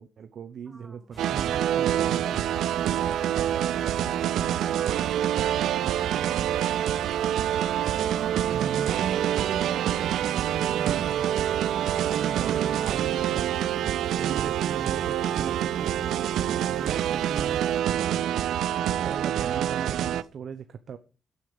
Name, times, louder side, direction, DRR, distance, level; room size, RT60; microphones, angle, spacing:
voice 1, 0.0-2.5 6.1-6.3 8.5-13.5 14.2-16.2 16.6-18.2 19.0-21.0, right 7 dB, 60° right, 10 dB, 0.9 m, -38 dB
voice 2, 0.7-1.2 16.4-16.9, right 2 dB, 15° right, 7 dB, 2.0 m, -48 dB
sound 1, 1.1-17.8, left 1 dB, 10° left, 5.2 m, -48 dB
sound 2, 1.2-20.2, right 11 dB, 90° right, 0.5 m, -26 dB
9.7 x 8.5 x 6.9 m, 0.35 s
cardioid pair, 115°, 0 cm